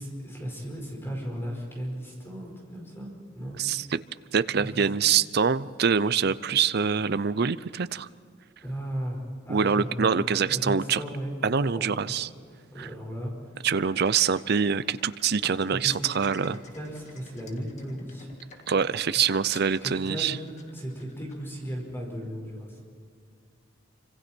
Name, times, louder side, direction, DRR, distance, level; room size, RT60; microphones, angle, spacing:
voice 1, 0.0-3.1 3.3-3.6 4.6-4.7 5.1-5.3 8.6-11.3 11.7-12.2 12.7-13.3 15.7-16.0 16.7-18.3 18.6-18.7 19.8-20.5 20.7-22.8, equal, 10° left, -1 dB, 5.1 m, -36 dB
voice 2, 3.6-4.0 4.3-8.1 9.5-11.0 11.4-12.3 12.8-12.9 13.6-16.6 18.7-20.4, right 6 dB, 55° right, 15 dB, 0.6 m, -25 dB
sound 1, 13.9-21.6, left 4 dB, 35° left, 2.0 m, -52 dB
27.5 x 26.0 x 4.5 m, 2.3 s
head